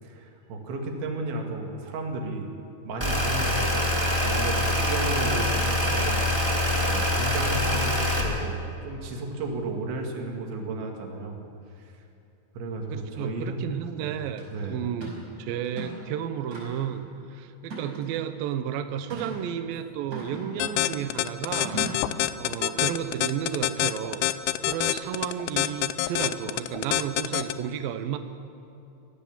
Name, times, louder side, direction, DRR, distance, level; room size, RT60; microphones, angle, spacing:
voice 1, 0.0-2.5 2.8-3.8 4.2-6.2 6.8-11.4 11.8-11.9 12.5-13.6 14.0-14.9 19.4-19.5, right 2 dB, 70° right, 1 dB, 4.5 m, -34 dB
sound 1, 3.0-8.2, left 1 dB, 10° right, 1.2 m, -24 dB
voice 2, 4.6-5.0 5.3-5.4 12.9-15.1 15.4-17.0 17.3-21.8 22.4-24.2 24.6-28.2, right 9 dB, 85° right, 9 dB, 2.0 m, -32 dB
sound 2, 14.4-14.5 15.0-15.2 15.6-16.1 16.5-17.0 17.6-18.3 19.1-19.4 20.1-21.0 21.6-22.1, right 3 dB, 35° right, 6.6 m, -37 dB
sound 3, 20.6-27.5, left 16 dB, 85° left, 3.2 m, -25 dB
23.5 x 16.5 x 7.4 m, 2.7 s
omnidirectional pair, 5.6 m